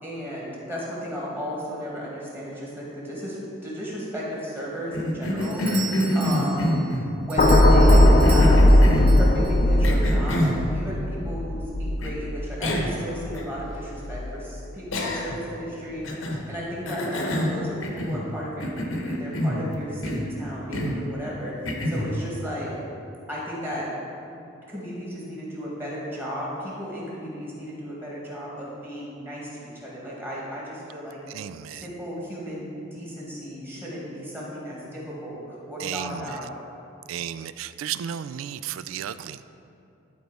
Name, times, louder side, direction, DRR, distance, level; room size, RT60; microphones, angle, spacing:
voice 1, 0.0-3.4 3.6-5.9 6.1-6.8 7.2-8.7 9.1-22.7 23.3-23.9 24.3-24.4 24.7-31.2 31.7-36.5, equal, 10° right, -6 dB, 1.7 m, -34 dB
Cough, 4.9-7.1 7.9-9.2 9.8-10.6 12.0-12.1 12.6-13.0 13.4-13.5 14.9-15.5 16.0-16.4 16.9-18.3 18.6-19.7 20.0-20.3 20.7-21.0 21.7-22.1, equal, 75° left, 0.9 m, -27 dB
Doorbell, 5.4-9.9, right 6 dB, 25° right, 0.5 m, -38 dB
sound 1, 7.4-13.7 14.0-14.3, left 1 dB, 40° left, 0.5 m, -18 dB
voice 2, 31.3-31.9 35.8-36.4 37.1-39.4, right 9 dB, 80° right, 14 dB, 0.3 m, -33 dB
11.5 x 4.0 x 4.7 m, 2.7 s
head